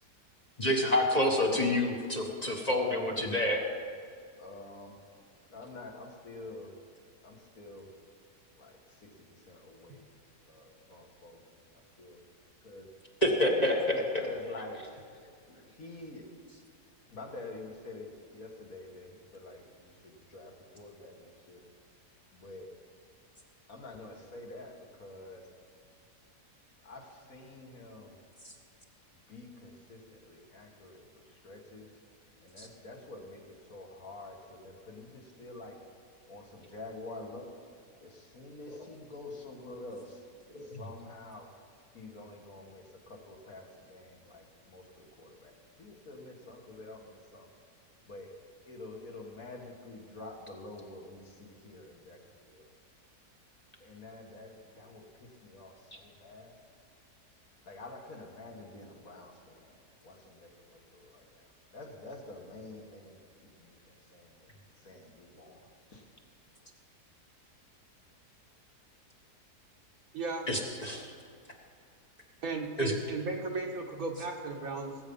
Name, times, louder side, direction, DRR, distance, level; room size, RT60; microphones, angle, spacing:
voice 1, 0.6-3.6 13.2-14.0 32.6-32.7 38.7-38.8 40.5-40.8 70.5-71.1 72.8-72.9, left 1 dB, 25° left, 0 dB, 1.2 m, -28 dB
voice 2, 4.4-5.0 5.5-6.7 7.2-7.9 8.6-10.0 10.5-11.5 12.0-12.2 12.6-12.9 13.4-14.8 15.5-16.3 17.1-21.6 22.3-22.7 23.7-25.4 26.8-28.2 29.3-31.9 32.4-35.8 36.3-37.5 38.0-40.3 40.6-41.5 41.9-47.5 48.0-48.3 48.7-52.7 53.8-56.6 57.7-59.8 60.0-61.5 61.7-64.5 64.8-65.6 65.9-66.1, left 2 dB, 60° left, 0 dB, 2.1 m, -48 dB
voice 3, 70.1-70.5 72.4-75.0, right 3 dB, 60° right, 1 dB, 1.8 m, -35 dB
19.0 x 8.3 x 5.4 m, 2.3 s
omnidirectional pair, 1.7 m